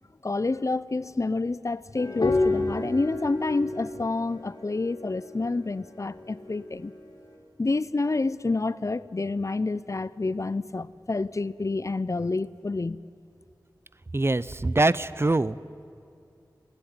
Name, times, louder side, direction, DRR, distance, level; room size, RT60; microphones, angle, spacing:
voice 1, 0.2-6.9 7.6-13.0, left 3 dB, 45° left, 18 dB, 0.6 m, -28 dB
sound 1, 2.0-6.9, left 2 dB, 65° left, 3.6 m, -30 dB
voice 2, 14.1-15.6, right 2 dB, 35° right, 18 dB, 0.6 m, -24 dB
21.0 x 16.0 x 9.6 m, 2.4 s
wide cardioid pair, 45°, 8 cm